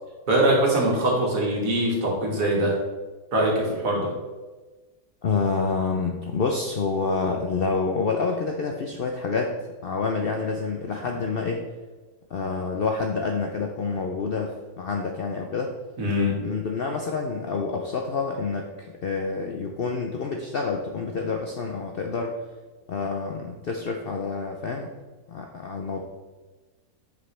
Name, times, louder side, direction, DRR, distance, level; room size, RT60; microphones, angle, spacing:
voice 1, 0.3-2.8 3.3-4.1 16.0-16.4, right 1 dB, 60° right, -2 dB, 2.0 m, -22 dB
voice 2, 5.2-9.6 9.8-11.7 12.3-15.7 16.4-22.4 22.9-24.9 25.3-26.0, left 4 dB, 60° left, 2 dB, 0.6 m, -28 dB
7.8 x 5.4 x 3.3 m, 1.2 s
omnidirectional pair, 1.6 m